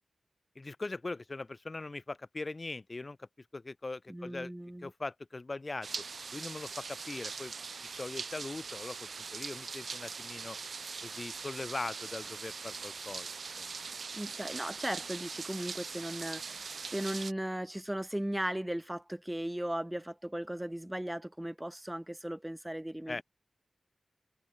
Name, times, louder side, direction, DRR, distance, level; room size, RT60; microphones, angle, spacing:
voice 1, 0.5-4.5 4.8-6.0 6.3-7.5 8.0-10.6 11.0-13.7 23.1-23.2, left 3 dB, 35° left, 1.2 m, -41 dB
voice 2, 4.1-4.9 14.1-23.2, right 1 dB, 10° right, 0.4 m, -37 dB
sound 1, 5.8-17.3, right 5 dB, 65° right, 2.0 m, -42 dB
wide cardioid pair, 120°, 0 cm